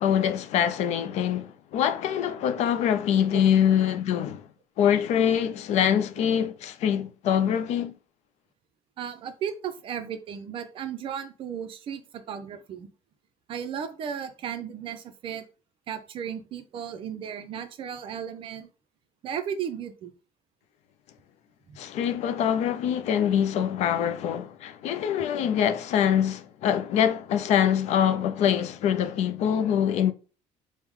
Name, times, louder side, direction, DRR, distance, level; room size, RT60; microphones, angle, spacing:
voice 1, 0.0-4.5 4.8-7.9 21.8-30.1, left 9 dB, 60° left, 0.4 m, -24 dB
voice 2, 9.0-12.9 13.5-15.4 15.9-18.7 19.2-20.1 21.7-21.8, right 8 dB, 45° right, 0.5 m, -35 dB
4.6 x 2.1 x 3.5 m
cardioid pair, 150°, 13 cm